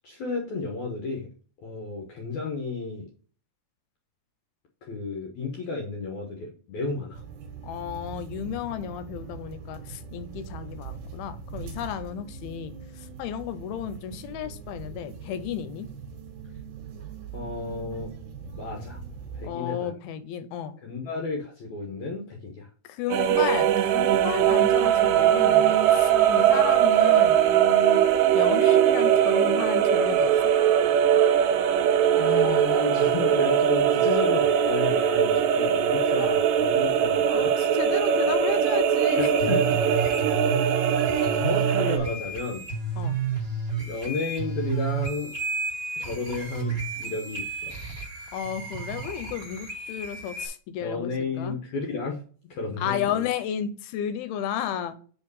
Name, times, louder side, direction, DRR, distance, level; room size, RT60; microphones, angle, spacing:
voice 1, 0.0-1.3 1.6-3.1 4.8-7.2 17.3-18.1 18.5-19.0 19.3-19.9 20.8-22.7 32.2-37.5 39.2-39.8 41.3-42.7 43.8-45.3 46.0-47.8 50.8-52.2 52.5-53.1, left 3 dB, 65° left, 1.9 m, -32 dB
sound 1, 7.1-19.5, right 5 dB, 65° right, 2.2 m, -41 dB
voice 2, 7.6-15.9 19.4-20.8 22.9-28.0 28.3-30.3 36.2-36.5 37.3-39.5 43.0-43.2 48.3-51.1 51.4-51.6 52.8-55.0, left 9 dB, 85° left, 2.5 m, -33 dB
sound 2, 23.1-42.0, right 9 dB, 80° right, 2.0 m, -21 dB
sound 3, 39.3-50.5, right 6 dB, 35° right, 1.4 m, -31 dB
5.3 x 4.5 x 5.4 m
omnidirectional pair, 4.5 m